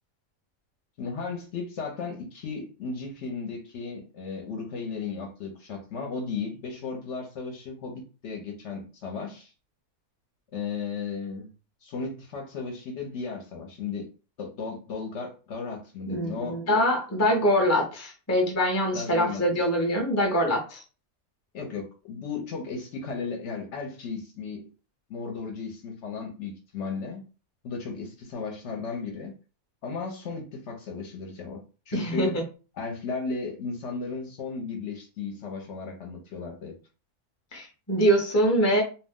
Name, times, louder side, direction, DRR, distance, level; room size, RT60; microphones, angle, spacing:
voice 1, 1.0-9.5 10.5-11.5 11.8-14.1 14.4-16.6 18.9-19.4 21.5-24.7 25.1-27.2 27.6-29.3 29.8-32.4 32.7-36.8, left 5 dB, 65° left, 0.9 m, -35 dB
voice 2, 16.1-20.8 31.9-32.4 37.5-38.8, equal, 20° left, 0.4 m, -24 dB
2.5 x 2.1 x 3.5 m
omnidirectional pair, 1.5 m